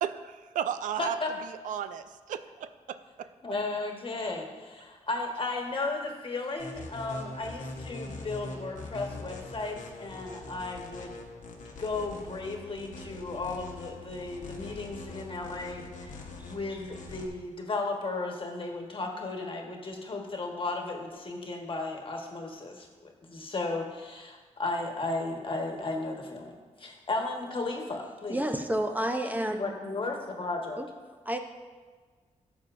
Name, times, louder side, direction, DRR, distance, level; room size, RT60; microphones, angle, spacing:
voice 1, 0.0-1.2 1.5-3.3, right 9 dB, 90° right, 11 dB, 0.4 m, -34 dB
voice 2, 1.0-1.3 3.4-11.2 11.8-22.9 23.2-28.4 29.5-30.8, left 3 dB, 40° left, 1 dB, 1.4 m, -35 dB
sound 1, 6.6-17.3, left 3 dB, 75° left, 1.1 m, -43 dB
voice 3, 28.3-29.7 30.8-30.9 31.3-31.4, right 1 dB, 10° right, 5 dB, 0.7 m, -29 dB
12.0 x 7.0 x 2.6 m, 1.5 s
cardioid pair, 75°, 13 cm